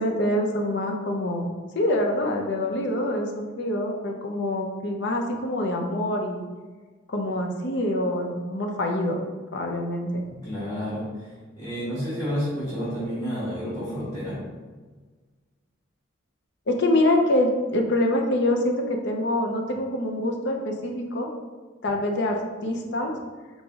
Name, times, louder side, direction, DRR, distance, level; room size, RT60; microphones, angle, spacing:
voice 1, 0.0-6.4 7.1-9.2 9.5-10.2 16.7-21.3 21.8-23.1, left 1 dB, 55° left, 2 dB, 0.6 m, -25 dB
voice 2, 10.3-14.4, equal, 15° left, -12 dB, 1.1 m, -30 dB
3.9 x 3.2 x 3.5 m, 1.4 s
head